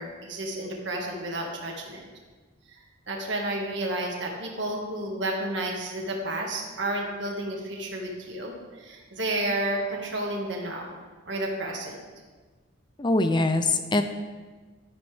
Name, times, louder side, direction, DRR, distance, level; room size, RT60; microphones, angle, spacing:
voice 1, 0.0-2.1 2.7-11.0 11.3-12.0, right 1 dB, 65° right, 0 dB, 1.9 m, -31 dB
voice 2, 13.0-14.0, left 2 dB, 25° left, 8 dB, 0.5 m, -23 dB
12.0 x 10.5 x 3.5 m, 1.4 s
head